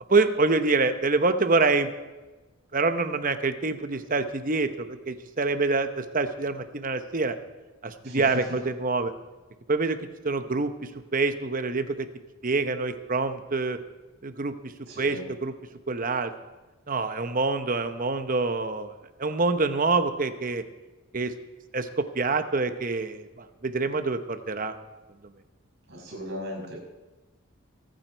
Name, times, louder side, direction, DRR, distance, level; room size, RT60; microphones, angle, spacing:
voice 1, 0.1-1.9 2.7-7.4 7.8-9.1 9.7-10.0 10.2-10.7 11.1-12.1 12.4-13.8 14.2-14.5 15.0-15.5 15.9-16.3 16.9-18.9 19.2-20.6 21.1-21.3 21.7-24.7, right 3 dB, 40° right, 9 dB, 0.9 m, -26 dB
voice 2, 14.9-15.2 25.9-26.8, equal, 55° right, -2 dB, 6.3 m, -37 dB
22.5 x 9.2 x 4.5 m, 1.2 s
head